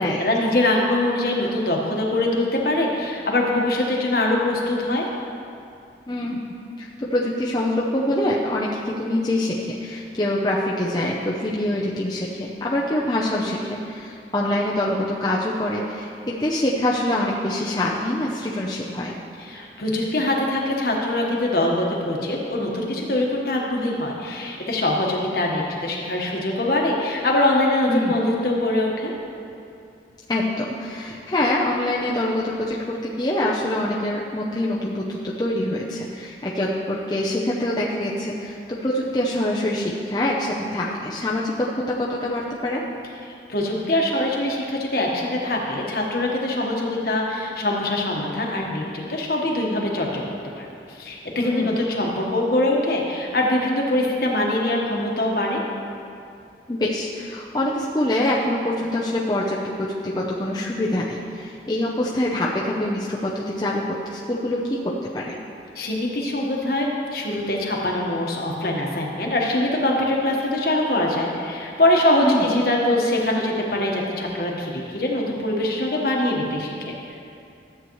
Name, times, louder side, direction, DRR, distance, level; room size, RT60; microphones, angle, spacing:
voice 1, 0.0-5.0 19.4-29.1 43.2-50.2 50.6-55.6 65.7-76.9, left 1 dB, 55° left, -1 dB, 1.3 m, -23 dB
voice 2, 6.1-19.2 27.9-28.2 30.3-38.6 38.8-42.8 51.4-51.8 56.7-64.8 65.1-65.4 72.2-72.6, left 1 dB, 25° left, -4 dB, 0.6 m, -25 dB
13.0 x 7.9 x 3.1 m, 2.5 s
head